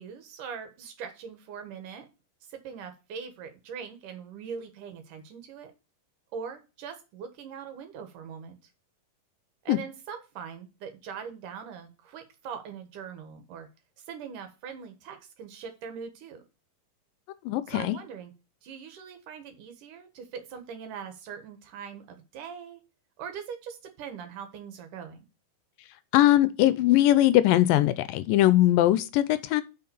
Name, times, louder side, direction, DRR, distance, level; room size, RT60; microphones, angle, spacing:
voice 1, 0.0-2.1 2.5-5.7 6.3-8.6 9.6-13.7 14.0-16.4 17.7-18.3 18.6-22.8 23.2-25.2, right 6 dB, 70° right, 3.0 m, -41 dB
voice 2, 17.5-18.0 26.1-29.6, left 14 dB, 85° left, 2.3 m, -21 dB
5.9 x 5.8 x 6.9 m
omnidirectional pair, 4.0 m